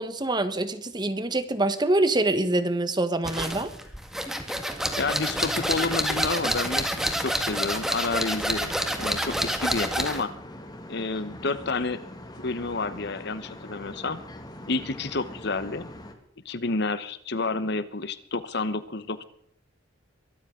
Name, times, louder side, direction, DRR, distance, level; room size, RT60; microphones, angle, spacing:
voice 1, 0.0-3.7, right 2 dB, 20° right, 11 dB, 1.2 m, -25 dB
sound 1, 3.2-10.3, equal, ahead, 1.9 m, -28 dB
voice 2, 5.0-8.7 9.0-10.3 10.9-12.0 12.4-14.2 14.7-15.9 16.4-19.2, left 3 dB, 55° left, 14 dB, 1.1 m, -30 dB
sound 2, 8.8-16.1, left 1 dB, 20° left, 2.2 m, -43 dB
23.5 x 13.0 x 3.9 m, 0.68 s
head